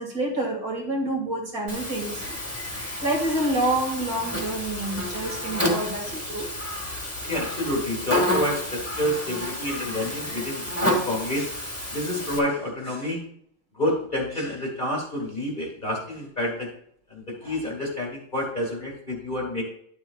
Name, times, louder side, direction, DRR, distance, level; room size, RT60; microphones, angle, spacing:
voice 1, 0.0-6.5, right 1 dB, 45° right, -2 dB, 2.7 m, -28 dB
Buzz, 1.7-12.4, left 1 dB, 5° left, 2.1 m, -30 dB
voice 2, 7.3-11.5 11.9-13.2 13.7-16.7 17.1-19.6, left 1 dB, 25° left, -1 dB, 2.3 m, -28 dB
11.5 x 7.9 x 2.4 m, 0.66 s
omnidirectional pair, 2.1 m